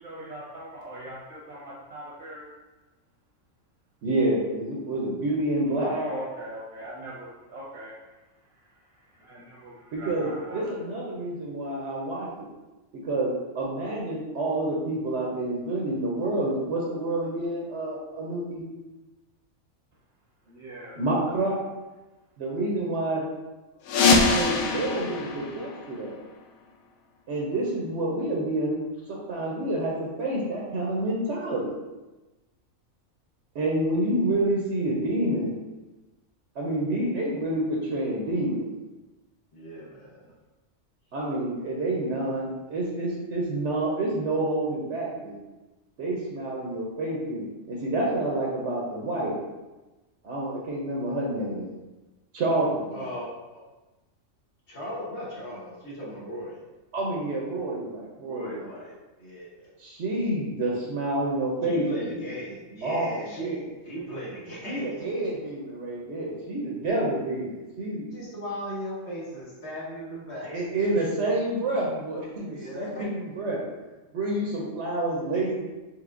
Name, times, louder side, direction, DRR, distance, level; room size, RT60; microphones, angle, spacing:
voice 1, 0.0-2.5 5.8-8.0 9.1-10.7 20.4-21.0, right 1 dB, 90° right, -7 dB, 1.5 m, -39 dB
voice 2, 4.0-5.9 9.9-12.5 13.0-18.7 21.0-21.6 22.4-23.2 24.0-26.2 27.3-28.8 29.1-31.7 33.5-35.5 36.5-38.7 41.1-45.4 46.0-49.4 50.2-51.7 52.3-53.1 56.9-58.7 59.8-61.8 62.1-62.2 62.8-63.6 64.6-68.0 70.5-73.6 74.1-75.6, right 1 dB, 60° right, -3 dB, 1.0 m, -28 dB
sound 1, 23.8-26.5, left 4 dB, 85° left, 1.0 m, -24 dB
voice 3, 39.5-40.3 52.9-53.6 54.7-56.6 58.2-58.9 59.2-59.7 61.6-65.1 68.1-70.6 72.5-73.1, equal, 55° left, -6 dB, 1.2 m, -37 dB
4.7 x 3.5 x 2.5 m, 1.1 s
omnidirectional pair, 1.4 m